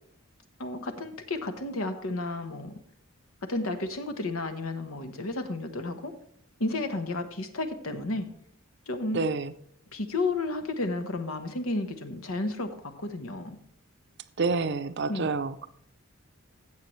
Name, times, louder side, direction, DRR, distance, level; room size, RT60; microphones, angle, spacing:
voice 1, 0.6-2.7 3.4-6.1 6.6-8.3 8.9-9.2 9.9-13.6 15.1-15.3, left 2 dB, 80° left, 1.1 m, -32 dB
voice 2, 9.1-9.5 14.4-15.7, right 4 dB, 55° right, 0.5 m, -28 dB
15.5 x 7.4 x 3.2 m
head